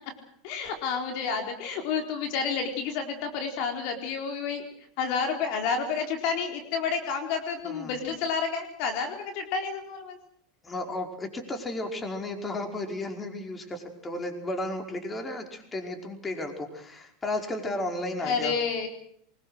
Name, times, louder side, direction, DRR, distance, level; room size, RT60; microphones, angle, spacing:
voice 1, 0.4-4.7 5.0-10.2 18.2-18.9, left 5 dB, 60° left, 4 dB, 4.2 m, -30 dB
voice 2, 7.6-8.0 10.6-18.5, left 1 dB, 20° left, 4 dB, 5.1 m, -34 dB
24.0 x 21.5 x 6.5 m, 0.68 s
hypercardioid pair, 105°, 0 cm